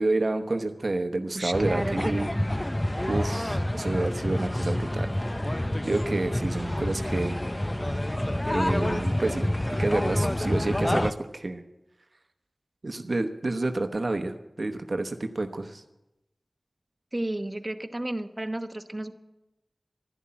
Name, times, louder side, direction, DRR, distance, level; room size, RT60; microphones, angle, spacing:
voice 1, 0.0-2.3 3.1-5.1 5.8-7.4 8.5-9.5 9.8-11.6 12.8-15.8, right 2 dB, 65° right, 6 dB, 1.0 m, -29 dB
voice 2, 1.3-2.6 17.1-19.1, right 1 dB, 30° right, 7 dB, 1.1 m, -32 dB
sound 1, 1.5-11.1, left 1 dB, 25° left, 0.7 m, -28 dB
12.0 x 11.0 x 8.7 m, 0.96 s
wide cardioid pair, 45°, 0 cm